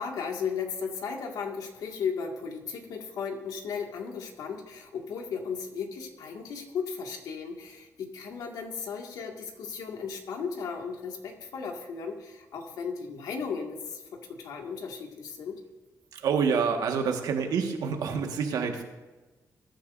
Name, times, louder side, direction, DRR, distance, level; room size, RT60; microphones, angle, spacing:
voice 1, 0.0-15.6, left 6 dB, 85° left, 2 dB, 2.0 m, -35 dB
voice 2, 16.1-18.8, right 6 dB, 85° right, 3 dB, 1.6 m, -27 dB
20.5 x 10.5 x 2.6 m, 1.2 s
cardioid pair, 110°, 6 cm